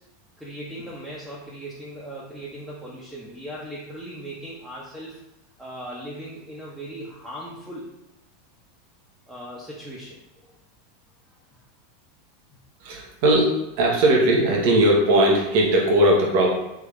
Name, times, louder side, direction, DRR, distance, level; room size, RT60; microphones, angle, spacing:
voice 1, 0.4-5.2 5.6-7.9 9.3-10.6, right 1 dB, 5° right, -7 dB, 1.1 m, -38 dB
voice 2, 12.8-16.5, right 1 dB, 55° right, -1 dB, 1.2 m, -19 dB
3.6 x 3.5 x 3.4 m, 0.94 s
figure-of-eight pair, 85°, 0 cm